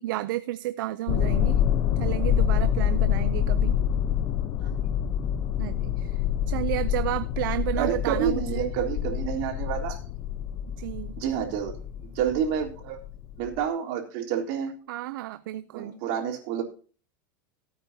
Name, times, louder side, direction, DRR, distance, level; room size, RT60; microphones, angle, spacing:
voice 1, 0.0-1.6 2.0-3.7 5.6-6.2 6.5-8.7 10.8-11.2 14.9-15.9, right 15 dB, 75° right, 0.6 m, -32 dB
sound 1, 1.1-13.6, left 10 dB, 40° left, 0.8 m, -26 dB
voice 2, 7.7-10.0 11.2-11.7 12.0-13.0 13.4-14.7 15.7-16.6, right 9 dB, 55° right, 3.7 m, -29 dB
17.5 x 8.8 x 2.8 m
supercardioid pair, 140°, 11 cm